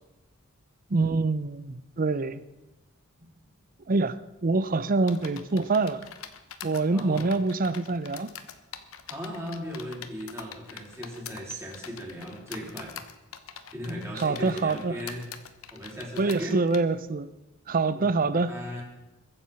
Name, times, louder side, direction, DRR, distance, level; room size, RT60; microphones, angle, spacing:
voice 1, 0.9-2.4 3.9-6.1 6.6-8.3 14.2-15.0 16.2-17.3 17.7-18.5, right 3 dB, 40° right, 0.6 m, -25 dB
sound 1, 5.1-16.8, left 8 dB, 75° left, 1.0 m, -44 dB
voice 2, 6.9-7.3 9.1-12.9 13.7-15.2 15.7-16.6 17.9-18.1 18.5-18.8, equal, 15° right, 3.8 m, -37 dB
22.0 x 7.6 x 5.8 m
head